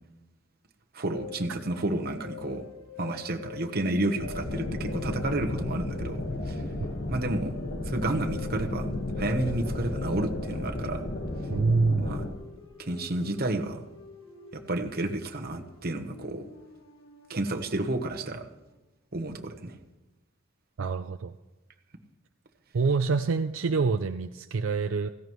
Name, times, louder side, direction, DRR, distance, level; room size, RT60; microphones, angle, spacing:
voice 1, 0.9-2.6 3.0-6.6 7.1-7.6 7.8-8.9 9.2-11.0 12.0-12.2 12.8-13.8 14.5-16.5 17.3-18.5 19.1-19.8, right 2 dB, 50° right, 5 dB, 1.1 m, -31 dB
sound 1, 1.1-18.5, left 6 dB, 70° left, 1.5 m, -46 dB
sound 2, 4.2-12.3, left 2 dB, 55° left, 1.5 m, -33 dB
voice 2, 11.5-12.1 20.8-21.3 22.7-25.1, right 4 dB, 75° right, 7 dB, 0.5 m, -26 dB
16.5 x 15.5 x 3.1 m, 1.0 s
head